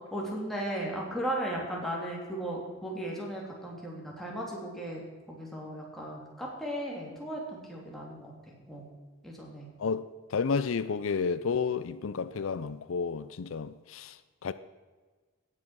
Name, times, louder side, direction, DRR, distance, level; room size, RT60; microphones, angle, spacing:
voice 1, 0.1-8.9 9.2-9.7, right 1 dB, ahead, 3.0 m, -36 dB
voice 2, 9.8-14.5, left 5 dB, 70° left, 0.5 m, -31 dB
17.5 x 7.5 x 6.1 m
head